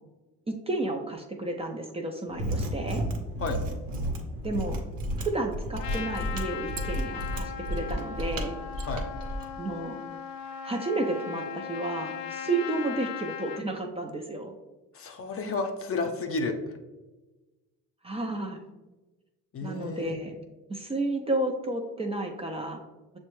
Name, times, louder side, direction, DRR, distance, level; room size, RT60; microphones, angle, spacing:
voice 1, 0.5-3.0 4.4-4.8 5.2-8.6 9.6-10.0 10.6-14.5 18.0-18.6 19.6-20.4 20.7-22.8, right 2 dB, 15° right, 1 dB, 0.4 m, -32 dB
Mechanisms, 2.3-9.5, equal, 70° right, 0.8 m, -32 dB
Trumpet, 5.8-13.6, left 8 dB, 80° left, 0.5 m, -38 dB
voice 2, 14.9-16.6 19.5-20.2, left 3 dB, 40° left, 5 dB, 0.6 m, -31 dB
6.4 x 2.2 x 3.0 m, 1.2 s
supercardioid pair, 80°, 35 cm